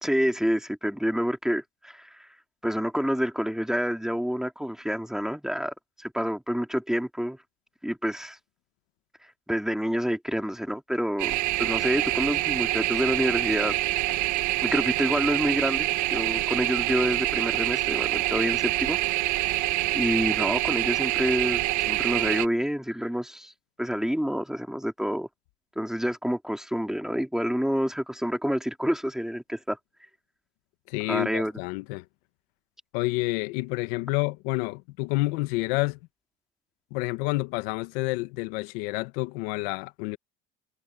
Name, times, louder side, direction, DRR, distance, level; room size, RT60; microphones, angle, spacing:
voice 1, 0.0-2.3 2.6-7.4 7.8-8.4 9.5-13.7 14.6-19.3 19.9-23.5 23.8-25.3 25.8-29.8 31.1-31.5, equal, ahead, 2.8 m, -28 dB
sound 1, 11.2-22.5, right 18 dB, 70° right, 1.6 m, -26 dB
voice 2, 30.9-32.0 32.9-36.0 36.9-40.2, left 22 dB, 85° left, 1.4 m, -29 dB
supercardioid pair, 90°, 30 cm